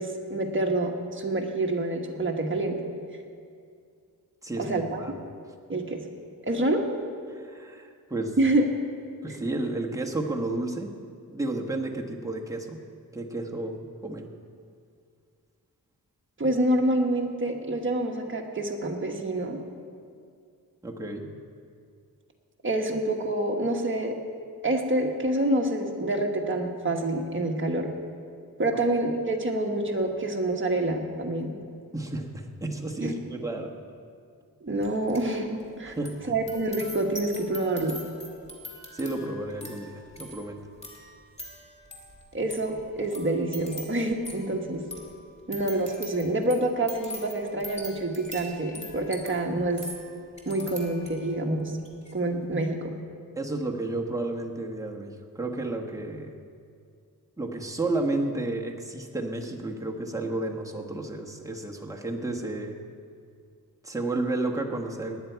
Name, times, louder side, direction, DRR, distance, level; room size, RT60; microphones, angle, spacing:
voice 1, 0.0-2.8 4.6-5.0 5.7-6.0 6.5-6.8 8.4-8.6 16.4-19.6 22.6-24.2 24.6-27.9 28.6-31.5 33.0-33.1 34.6-36.0 36.2-38.0 42.3-44.8 45.5-49.8 50.4-51.8 52.1-52.9, right 1 dB, 30° right, 1 dB, 1.4 m, -27 dB
voice 2, 4.4-5.1 7.3-8.4 9.2-10.9 11.3-12.8 13.1-14.3 20.8-21.3 28.7-28.8 31.9-33.7 35.8-36.1 38.9-40.6 53.4-56.3 57.4-62.8 63.8-65.2, right 2 dB, 10° right, 0 dB, 1.2 m, -32 dB
sound 1, 34.8-35.3 35.6-51.4 51.8-52.1, equal, 15° left, 2.2 m, -43 dB
19.0 x 10.5 x 4.6 m, 2.3 s
wide cardioid pair, 135°, 37 cm